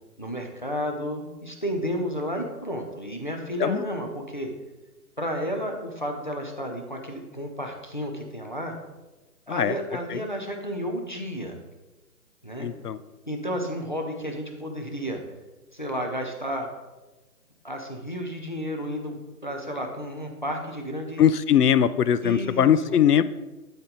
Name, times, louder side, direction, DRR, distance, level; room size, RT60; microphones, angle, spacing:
voice 1, 0.2-4.5 5.2-8.7 9.5-11.6 12.4-12.7 13.3-15.2 15.7-16.7 17.6-21.3 22.2-23.0, equal, 30° left, 2 dB, 0.6 m, -32 dB
voice 2, 12.6-13.0 21.2-23.2, left 9 dB, 75° left, 15 dB, 0.6 m, -21 dB
11.5 x 4.4 x 3.8 m, 1.1 s
hypercardioid pair, 180°, 47 cm